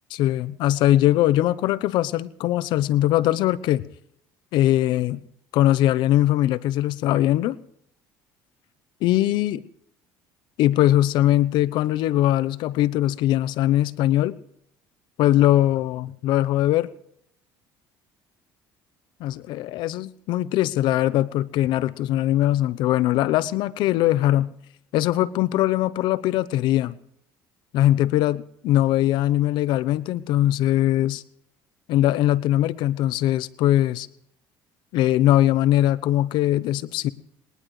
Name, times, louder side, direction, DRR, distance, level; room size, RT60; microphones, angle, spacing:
voice 1, 0.1-3.8 4.5-5.2 5.5-7.6 9.0-9.6 10.6-14.4 15.2-16.9 19.2-24.5 24.9-27.0 27.7-31.2 31.9-34.1 34.9-37.1, left 13 dB, 70° left, 17 dB, 0.8 m, -21 dB
21.5 x 19.0 x 3.2 m, 0.70 s
cardioid pair, 110°, 8 cm